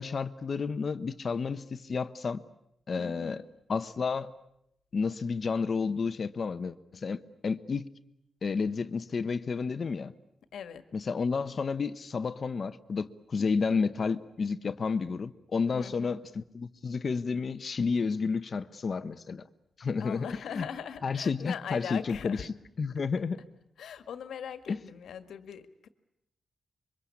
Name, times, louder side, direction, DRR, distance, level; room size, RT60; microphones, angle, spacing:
voice 1, 0.0-2.4 2.9-3.4 3.7-4.3 4.9-7.9 8.4-10.1 10.9-19.4 19.8-20.3 20.5-20.7 21.0-22.4 22.8-23.4 24.7-24.8, left 5 dB, 40° left, 12 dB, 1.0 m, -31 dB
voice 2, 3.0-3.5 10.5-10.8 13.4-13.5 15.7-16.2 20.0-22.5 23.8-25.9, left 8 dB, 85° left, 10 dB, 1.7 m, -41 dB
27.0 x 24.0 x 8.5 m, 0.78 s
wide cardioid pair, 140°, 0 cm